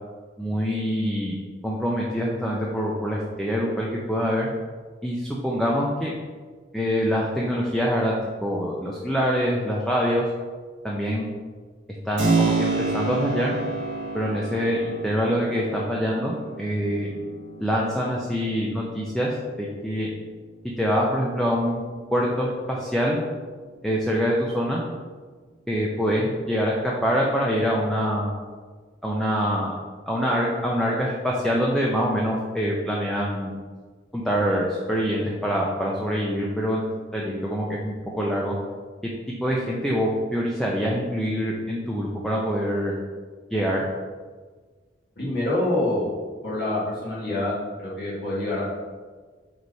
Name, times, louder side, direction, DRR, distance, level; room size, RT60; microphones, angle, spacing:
voice 1, 0.4-4.5 5.0-6.1 6.7-8.1 8.4-10.2 10.8-11.3 12.0-13.5 14.1-17.1 17.6-20.1 20.8-21.8 22.1-23.2 23.8-24.8 25.7-26.8 27.0-28.3 29.0-29.7 30.1-33.5 34.1-36.8 37.1-38.5 39.4-43.0 43.5-43.8, equal, ahead, -4 dB, 0.6 m, -25 dB
Keyboard (musical), 12.2-20.7, right 3 dB, 85° right, 1.4 m, -30 dB
voice 2, 45.2-46.1 46.4-48.7, left 1 dB, 60° left, -9 dB, 1.9 m, -26 dB
4.7 x 4.1 x 5.3 m, 1.5 s
head